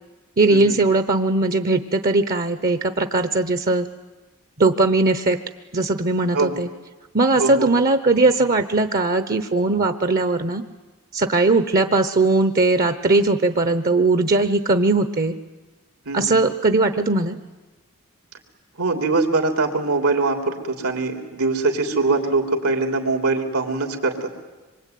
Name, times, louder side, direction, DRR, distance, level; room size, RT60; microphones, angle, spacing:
voice 1, 0.4-3.9 4.6-5.4 5.7-6.7 7.1-10.6 11.1-15.4 16.1-17.4, right 2 dB, 40° right, 10 dB, 1.0 m, -19 dB
voice 2, 7.4-7.7 16.1-16.4 18.8-24.3, right 3 dB, 80° right, 5 dB, 3.4 m, -22 dB
25.5 x 23.5 x 9.4 m, 1.2 s
head